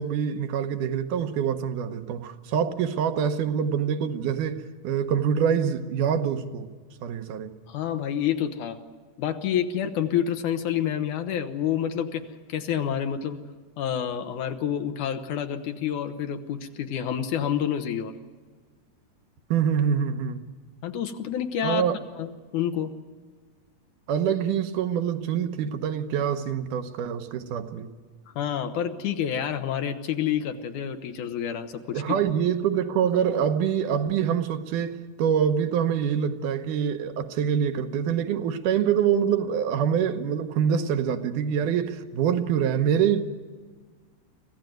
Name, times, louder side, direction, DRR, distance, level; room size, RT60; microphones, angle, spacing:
voice 1, 0.0-6.7 7.0-7.5 19.5-20.4 21.6-22.0 24.1-27.9 31.9-43.2, right 8 dB, 75° right, 2.5 m, -25 dB
voice 2, 7.7-8.8 9.2-12.2 12.5-13.4 13.8-18.1 20.8-21.9 22.2-22.9 28.4-32.2, left 9 dB, 70° left, 2.4 m, -28 dB
25.5 x 15.5 x 9.2 m
omnidirectional pair, 3.8 m